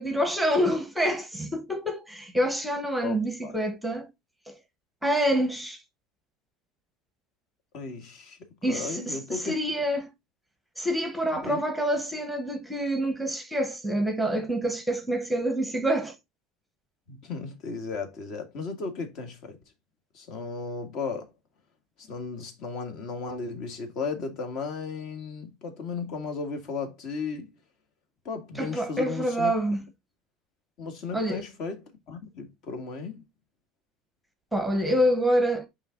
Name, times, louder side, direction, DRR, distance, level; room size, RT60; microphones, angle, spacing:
voice 1, 0.0-4.1 4.5-4.6 5.0-5.8 8.6-9.2 9.4-10.1 10.8-16.1 28.6-29.8 31.1-31.4 34.5-35.7, equal, ahead, 1.1 m, -27 dB
voice 2, 3.0-3.6 7.7-9.6 11.4-11.6 17.1-19.6 20.1-21.3 22.0-27.5 28.2-29.5 30.8-33.2, left 4 dB, 45° left, 1.8 m, -35 dB
8.8 x 3.5 x 3.8 m
cardioid pair, 175°, 0 cm